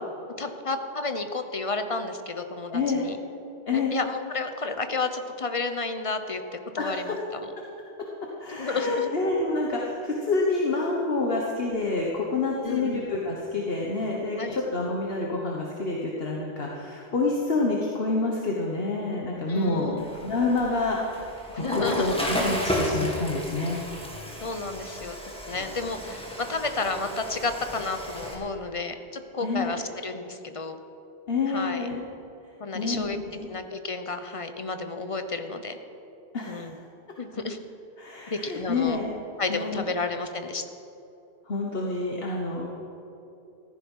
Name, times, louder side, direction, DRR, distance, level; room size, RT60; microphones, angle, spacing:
voice 1, 0.4-3.2 3.7-6.4 6.7-7.5 8.5-9.1 12.6-13.1 14.4-14.6 19.5-20.0 21.5-22.1 24.4-25.2 25.5-30.8 31.5-31.9 32.6-33.2 33.5-35.8 36.5-36.7 37.2-37.6 38.3-39.0 39.4-40.6, left 3 dB, 30° left, 8 dB, 1.0 m, -31 dB
voice 2, 2.7-3.0 3.7-4.0 6.8-7.2 7.6-7.7 8.4-20.0 20.2-21.4 21.7-23.8 29.4-29.8 31.3-32.0 32.7-33.5 36.3-36.8 38.0-39.2 39.5-39.9 41.5-42.7, left 3 dB, 65° left, -2 dB, 1.6 m, -28 dB
Water / Toilet flush, 20.0-28.3, equal, 5° left, 2.2 m, -33 dB
15.0 x 14.5 x 5.6 m, 2.9 s
omnidirectional pair, 1.1 m